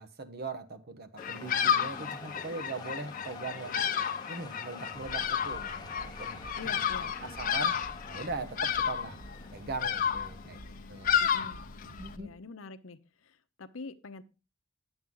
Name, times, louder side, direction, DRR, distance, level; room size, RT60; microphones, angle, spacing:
voice 1, 0.0-3.9 4.3-6.5 7.2-7.8 8.1-9.2 9.5-10.6 10.9-11.2 12.0-12.3, right 3 dB, 55° right, 1.1 m, -40 dB
Bird vocalization bird call bird song, 1.2-12.1, left 8 dB, 45° left, 0.8 m, -32 dB
sound 1, 1.2-10.6, left 3 dB, 20° left, 0.9 m, -48 dB
sound 2, 4.9-12.3, right 1 dB, 80° right, 5.3 m, -49 dB
voice 2, 6.6-7.1 11.2-11.6 12.2-14.2, left 4 dB, 85° left, 0.8 m, -45 dB
11.0 x 8.0 x 3.8 m
head